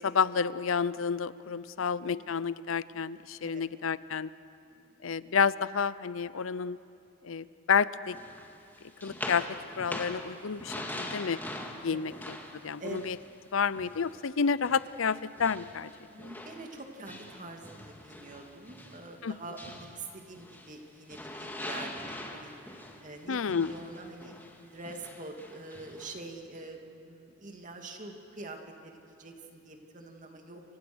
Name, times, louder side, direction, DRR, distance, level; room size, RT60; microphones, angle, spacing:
voice 1, 0.0-4.3 5.0-6.8 7.2-8.2 9.0-9.5 9.8-11.4 11.8-12.3 12.6-13.2 13.5-15.9 16.2-16.3 19.2-19.3 23.3-23.7, left 6 dB, 85° left, 17 dB, 0.6 m, -30 dB
voice 2, 1.5-2.2 3.4-3.7 4.6-4.9 11.9-12.0 12.8-13.1 16.1-22.5 22.8-24.3 24.6-30.6, right 2 dB, 40° right, 3 dB, 2.5 m, -45 dB
sound 1, 8.1-14.2 14.6-20.8 21.1-26.2, left 1 dB, 10° left, 2.0 m, -43 dB
28.5 x 25.0 x 6.2 m, 2.5 s
head